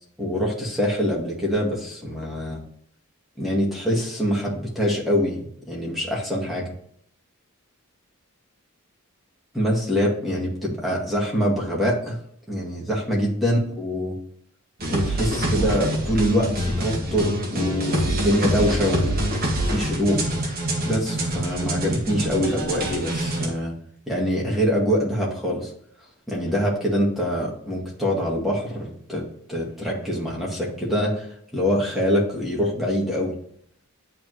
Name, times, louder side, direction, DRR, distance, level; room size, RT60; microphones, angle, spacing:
voice 1, 0.2-2.6 3.4-6.7 9.5-12.2 12.5-14.2 14.9-19.2 19.6-20.2 20.8-23.7 24.1-25.7 26.3-29.2 29.5-33.3, equal, ahead, -5 dB, 2.0 m, -24 dB
sound 1, 14.8-23.5, right 1 dB, 45° right, 1.6 m, -25 dB
10.0 x 3.6 x 3.2 m, 0.65 s
head